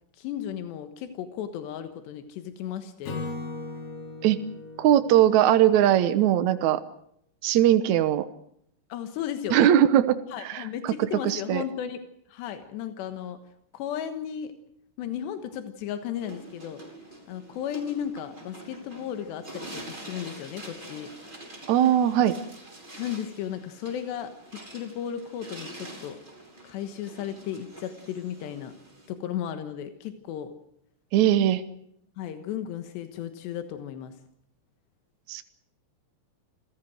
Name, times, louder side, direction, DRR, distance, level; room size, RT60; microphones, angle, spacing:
voice 1, 0.1-3.3 8.9-9.7 10.3-12.0 12.3-13.4 13.7-14.6 15.0-16.8 17.3-21.1 23.0-26.2 26.6-28.7 29.1-30.5 32.2-34.2, left 9 dB, 90° left, 8 dB, 3.6 m, -35 dB
Acoustic guitar / Strum, 3.1-6.4, left 3 dB, 70° left, 5.8 m, -39 dB
voice 2, 4.8-6.8 7.4-8.3 9.5-11.6 21.7-22.3 31.1-31.6 35.3-35.4, right 11 dB, 75° right, 10 dB, 1.7 m, -20 dB
sound 1, 16.1-29.1, right 1 dB, 10° right, 5.5 m, -45 dB
27.5 x 17.0 x 7.8 m, 0.72 s
omnidirectional pair, 4.8 m